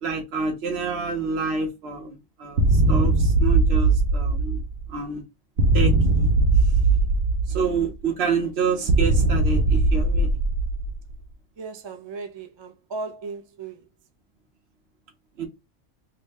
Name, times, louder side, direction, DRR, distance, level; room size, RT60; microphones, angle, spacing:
voice 1, 0.0-4.6 4.9-5.2 5.7-6.3 7.5-10.3 15.4-15.5, right 5 dB, 55° right, 1.0 m, -28 dB
sound 1, 2.6-4.9 5.6-7.9 8.9-11.1, right 2 dB, 85° right, 1.0 m, -20 dB
voice 2, 11.6-13.8, right 3 dB, 40° right, 0.4 m, -36 dB
3.2 x 2.8 x 3.3 m
omnidirectional pair, 1.3 m